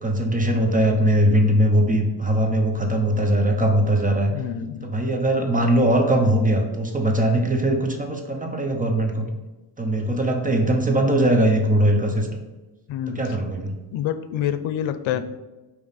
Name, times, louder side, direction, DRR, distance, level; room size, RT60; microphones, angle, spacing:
voice 1, 0.0-4.3 4.8-9.3 9.8-12.4 13.1-13.8, right 1 dB, 20° right, 3 dB, 0.7 m, -20 dB
voice 2, 4.3-4.9 12.9-13.2 13.9-15.2, left 10 dB, 90° left, 11 dB, 0.6 m, -27 dB
8.6 x 3.1 x 4.1 m, 1.1 s
cardioid pair, 150°, 45 cm